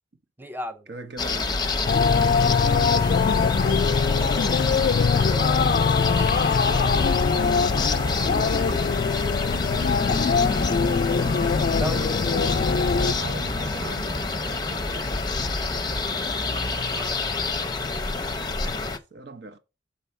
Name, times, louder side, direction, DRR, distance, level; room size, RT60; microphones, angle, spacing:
voice 1, 0.4-0.8 5.2-7.4 7.9-8.2 11.7-12.4 12.9-13.1 16.9-17.2, right 2 dB, 10° right, 0.5 m, -37 dB
voice 2, 0.9-1.7 2.1-6.1 8.1-10.5 12.4-15.5 18.6-19.6, right 3 dB, 65° right, 1.0 m, -41 dB
sound 1, 1.2-19.0, left 3 dB, 25° left, 0.7 m, -27 dB
sound 2, 1.9-13.1, left 5 dB, 50° left, 0.3 m, -22 dB
6.9 x 4.1 x 5.6 m
head